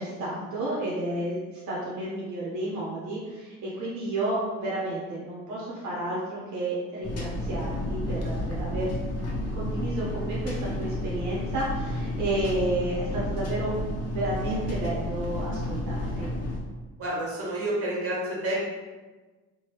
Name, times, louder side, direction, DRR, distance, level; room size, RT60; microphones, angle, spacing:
voice 1, 0.0-8.9 9.2-13.7 14.1-16.3, right 1 dB, 80° right, -6 dB, 0.8 m, -31 dB
sound 1, 7.0-16.6, left 1 dB, 55° left, 0.7 m, -31 dB
voice 2, 17.0-18.6, right 1 dB, 50° right, -5 dB, 1.4 m, -29 dB
3.1 x 2.7 x 2.9 m, 1.3 s
cardioid pair, 90°, 30 cm